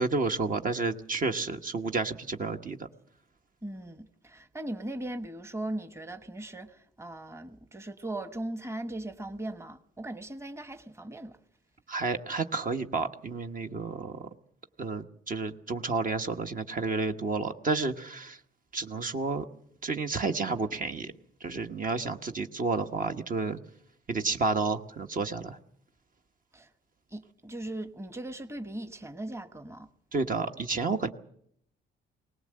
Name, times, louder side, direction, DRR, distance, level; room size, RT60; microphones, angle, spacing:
voice 1, 0.0-2.9 11.9-14.2 14.8-18.4 18.7-19.4 19.8-21.1 21.4-23.6 24.1-25.6 30.1-31.1, right 3 dB, 45° right, 1.2 m, -30 dB
voice 2, 3.6-11.4 26.5-26.7 27.1-29.9, right 1 dB, 15° right, 1.2 m, -39 dB
20.5 x 18.5 x 7.7 m
cardioid pair, 90°, 20 cm